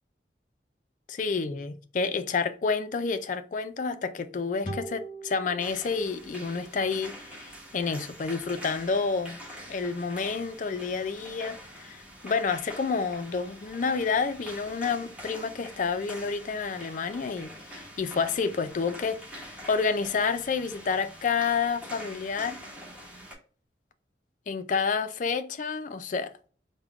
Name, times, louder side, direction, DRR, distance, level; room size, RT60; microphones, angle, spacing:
voice 1, 1.1-9.4 9.7-22.6 24.5-26.3, left 5 dB, 45° left, 0.4 m, -29 dB
sound 1, 4.6-8.0, right 2 dB, 30° left, 0.9 m, -43 dB
sound 2, 5.6-23.3, equal, 5° right, 1.0 m, -45 dB
3.6 x 2.2 x 3.5 m
head